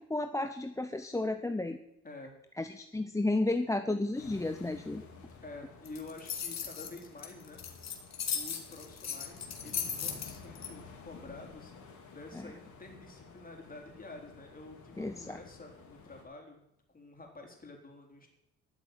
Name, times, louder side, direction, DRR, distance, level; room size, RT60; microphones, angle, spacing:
voice 1, 0.1-1.8 2.6-5.1 15.0-15.4, left 2 dB, 10° left, 8 dB, 0.8 m, -32 dB
sound 1, 4.1-16.2, left 5 dB, 80° left, 4.0 m, -52 dB
voice 2, 5.4-7.6 8.3-18.3, left 2 dB, 30° left, 2 dB, 3.9 m, -49 dB
sound 2, 5.9-10.7, left 7 dB, 60° left, 2.4 m, -37 dB
12.5 x 7.2 x 9.1 m, 0.81 s
cardioid pair, 90°, 30 cm